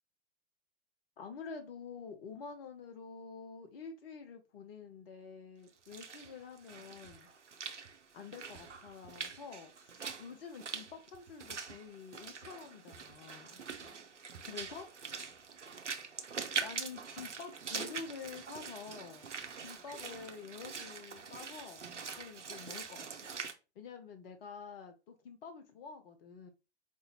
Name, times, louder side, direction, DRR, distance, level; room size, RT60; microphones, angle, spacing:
voice 1, 1.2-7.3 8.1-13.8 14.5-14.9 16.6-19.3 19.6-21.9 22.2-23.3 23.8-26.5, left 5 dB, 55° left, 5 dB, 1.0 m, -48 dB
Walk footsteps / Splash splatter, 5.7-23.5, right 5 dB, 85° right, 0.7 m, -44 dB
4.6 x 2.6 x 2.9 m, 0.28 s
figure-of-eight pair, 95°, 35 cm